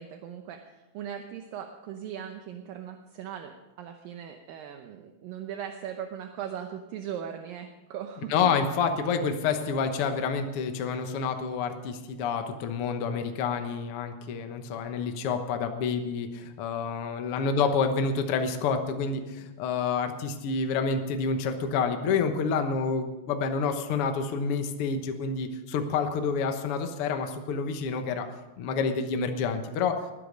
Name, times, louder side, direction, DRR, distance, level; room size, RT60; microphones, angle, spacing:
voice 1, 0.0-8.3, right 9 dB, 75° right, 5 dB, 2.4 m, -39 dB
voice 2, 8.3-28.3 28.6-30.1, left 5 dB, 90° left, 6 dB, 1.2 m, -28 dB
20.0 x 10.5 x 5.2 m, 1.0 s
omnidirectional pair, 4.5 m